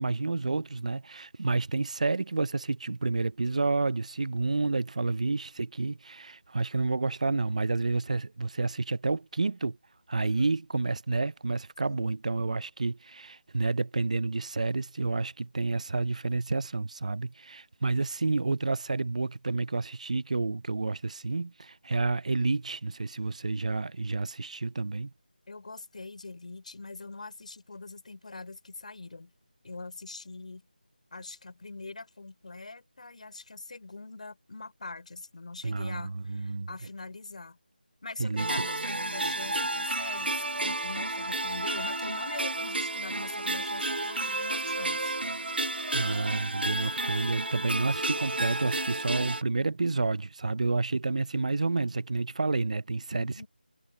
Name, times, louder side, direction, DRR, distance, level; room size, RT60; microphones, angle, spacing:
voice 1, 0.0-9.8 10.1-25.1 35.6-36.7 38.2-38.6 45.9-53.4, right 3 dB, 45° right, 0.5 m, -30 dB
voice 2, 10.1-10.6 11.8-12.1 25.5-29.3 29.6-30.6 31.1-37.6 38.0-45.2 53.1-53.5, left 3 dB, 45° left, 3.9 m, -43 dB
sound 1, 38.4-49.4, right 2 dB, 85° right, 1.2 m, -31 dB
figure-of-eight pair, 170°, 5 cm